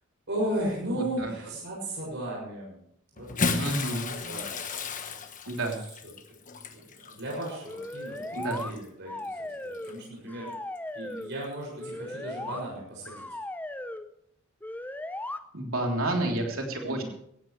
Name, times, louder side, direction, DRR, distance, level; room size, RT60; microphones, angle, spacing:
voice 1, 0.3-2.8 3.1-3.7 4.0-5.2 6.7-10.5 10.9-13.3 16.2-16.3 16.7-17.0, right 1 dB, 55° right, -3 dB, 6.7 m, -36 dB
voice 2, 0.8-1.3 3.6-4.1 5.5-5.8 8.3-8.6 15.5-17.0, right 2 dB, 75° right, 1 dB, 3.5 m, -30 dB
Bathtub (filling or washing) / Splash splatter, 3.2-8.8 9.7-9.9 11.4-11.5, left 4 dB, 40° left, 1.3 m, -34 dB
sound 1, 7.6-8.7 9.1-10.0 10.3-11.3 11.8-12.6 13.0-14.0 14.6-15.4, left 1 dB, 10° left, 0.7 m, -37 dB
17.5 x 15.5 x 3.3 m, 0.69 s
head